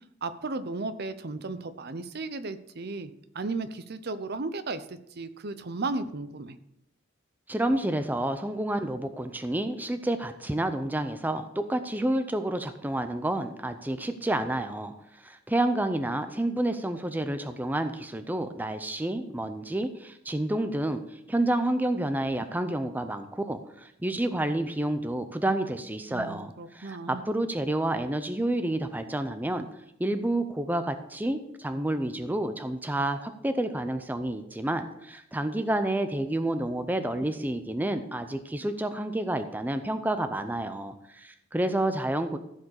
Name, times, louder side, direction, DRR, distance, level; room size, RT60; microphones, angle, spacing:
voice 1, 0.2-6.6 26.1-27.2, right 3 dB, 55° right, 12 dB, 0.7 m, -35 dB
voice 2, 7.5-14.9 15.2-29.7 30.0-42.4, right 1 dB, 10° right, 8 dB, 0.5 m, -29 dB
14.5 x 4.9 x 6.5 m, 0.80 s
head